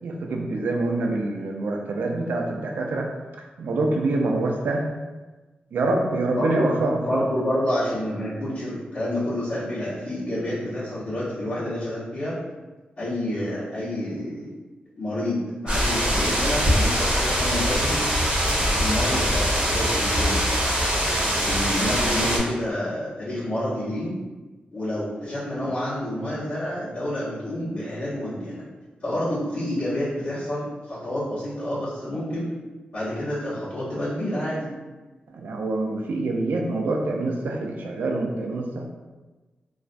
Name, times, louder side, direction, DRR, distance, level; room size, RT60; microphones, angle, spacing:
voice 1, 0.0-3.1 3.6-4.9 5.7-7.2 35.3-38.9, right 2 dB, 80° right, 1 dB, 0.4 m, -25 dB
voice 2, 6.3-6.7 7.0-12.4 13.0-14.5 15.0-18.0 18.8-20.5 21.3-24.1 24.7-28.6 29.0-32.4 32.9-34.7, left 1 dB, 45° left, -15 dB, 0.9 m, -28 dB
sound 1, 15.7-22.4, equal, 30° right, 0.7 m, -23 dB
2.4 x 2.1 x 2.5 m, 1.2 s
wide cardioid pair, 140°, 3 cm